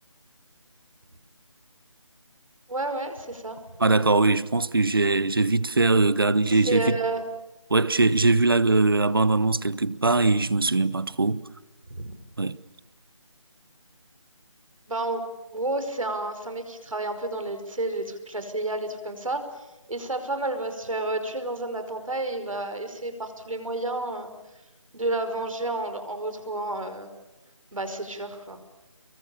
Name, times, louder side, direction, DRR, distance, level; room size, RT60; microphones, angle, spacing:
voice 1, 2.7-3.6 6.5-7.2 11.9-12.1 14.9-15.2 15.5-19.4 19.9-24.3 24.9-27.1 27.7-28.7, right 2 dB, 90° right, 5.2 m, -30 dB
voice 2, 3.8-7.0 7.7-11.4 12.4-12.6, right 3 dB, 45° right, 0.9 m, -21 dB
28.5 x 23.5 x 7.2 m
figure-of-eight pair, 180°, 17 cm